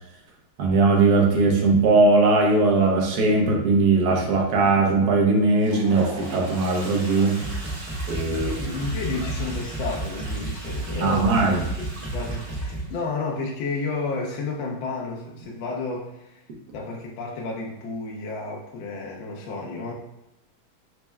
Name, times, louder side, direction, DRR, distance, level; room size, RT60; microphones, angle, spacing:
voice 1, 0.6-7.3 8.1-8.5 11.0-11.6, right 3 dB, 60° right, 0 dB, 1.0 m, -19 dB
Toilet flush, 5.4-13.1, right 1 dB, 40° right, 0.7 m, -40 dB
sound 1, 7.4-13.0, right 2 dB, 10° left, 0.7 m, -32 dB
voice 2, 8.3-11.6 11.9-16.4 16.7-19.9, left 3 dB, 75° left, -2 dB, 1.2 m, -31 dB
4.3 x 2.0 x 3.3 m, 0.93 s
omnidirectional pair, 2.2 m